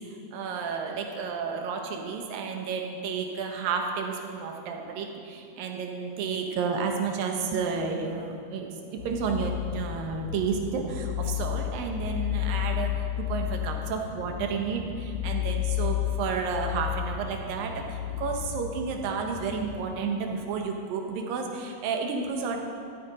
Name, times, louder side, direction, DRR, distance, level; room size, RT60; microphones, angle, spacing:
voice 1, 0.3-22.6, right 5 dB, 85° right, 3 dB, 3.0 m, -31 dB
sound 1, 9.0-19.8, left 12 dB, 75° left, 2.8 m, -32 dB
13.5 x 12.5 x 5.1 m, 2.4 s
omnidirectional pair, 4.0 m